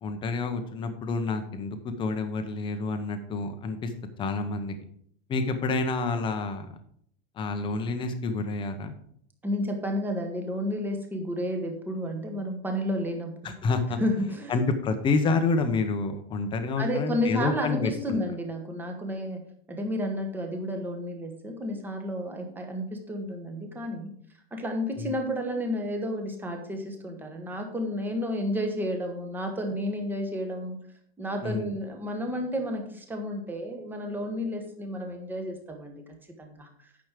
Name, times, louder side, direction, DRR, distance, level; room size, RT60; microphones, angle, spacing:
voice 1, 0.0-3.9 4.2-4.8 5.3-6.7 7.4-8.9 13.4-14.0 14.5-18.2 25.0-25.1 31.4-31.7, left 3 dB, 15° left, 8 dB, 0.8 m, -28 dB
voice 2, 9.4-13.5 14.0-14.6 16.8-19.4 19.7-24.1 24.5-30.8 31.2-36.7, equal, 5° right, 3 dB, 1.1 m, -31 dB
9.3 x 6.2 x 5.0 m, 0.65 s
supercardioid pair, 165°, 30 cm